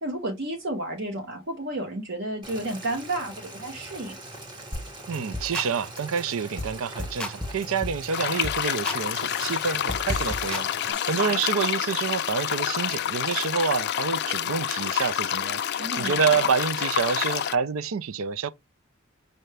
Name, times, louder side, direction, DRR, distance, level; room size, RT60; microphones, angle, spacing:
voice 1, 0.0-4.2 10.9-11.4 15.8-16.5, right 1 dB, 55° right, 1.0 m, -32 dB
Boiling, 2.4-10.9, right 1 dB, 20° right, 1.4 m, -42 dB
sound 1, 4.7-4.9 5.1-5.7 6.0-6.2 6.6-6.7 7.0-8.1 8.4-9.0 9.3-11.3, left 1 dB, 5° left, 0.7 m, -34 dB
voice 2, 5.1-18.5, right 6 dB, 80° right, 0.5 m, -28 dB
sound 2, 8.1-17.5, left 10 dB, 55° left, 0.4 m, -28 dB
5.6 x 2.6 x 3.3 m
head